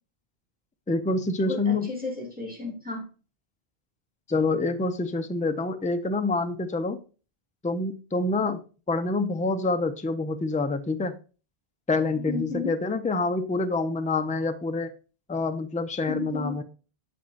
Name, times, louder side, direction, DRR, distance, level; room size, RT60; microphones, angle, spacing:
voice 1, 0.9-1.9 4.3-7.0 7.6-8.6 8.9-11.1 11.9-14.9 15.3-16.6, left 3 dB, 10° left, 8 dB, 0.4 m, -27 dB
voice 2, 1.5-3.1 12.2-12.7 16.1-16.6, left 4 dB, 10° right, -1 dB, 2.1 m, -33 dB
8.6 x 6.5 x 2.5 m, 0.35 s
omnidirectional pair, 1.0 m